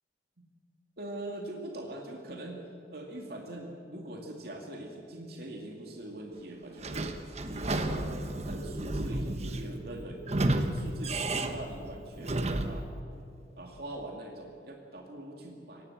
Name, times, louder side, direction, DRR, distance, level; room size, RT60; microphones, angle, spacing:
voice 1, 1.0-2.6 2.9-7.2 7.5-12.9 13.6-15.9, right 1 dB, 60° right, 0 dB, 2.4 m, -42 dB
Sliding door / Squeak, 6.8-12.9, right 1 dB, 40° right, 1.1 m, -32 dB
23.5 x 18.5 x 7.3 m, 2.5 s
head